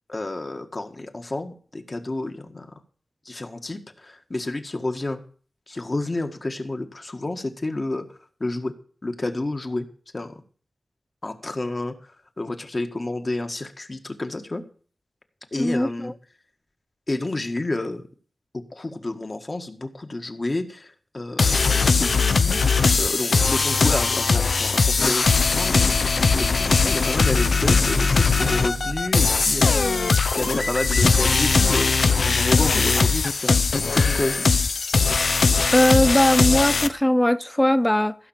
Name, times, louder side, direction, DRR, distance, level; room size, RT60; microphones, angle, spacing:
voice 1, 0.1-2.7 3.3-5.2 5.7-8.1 8.4-8.7 9.0-9.9 10.1-10.3 11.2-11.9 12.4-14.6 15.5-16.1 17.1-18.0 18.7-22.6 22.9-29.7 30.3-33.6 33.9-34.4, left 2 dB, 35° left, 1.8 m, -30 dB
voice 2, 15.6-16.1 35.7-38.2, left 1 dB, 10° left, 0.6 m, -19 dB
sound 1, 21.4-36.9, left 4 dB, 65° left, 0.9 m, -20 dB
sound 2, 26.3-29.0 29.3-31.8, right 2 dB, 70° right, 1.5 m, -33 dB
15.0 x 6.0 x 7.4 m
wide cardioid pair, 75°, 0 cm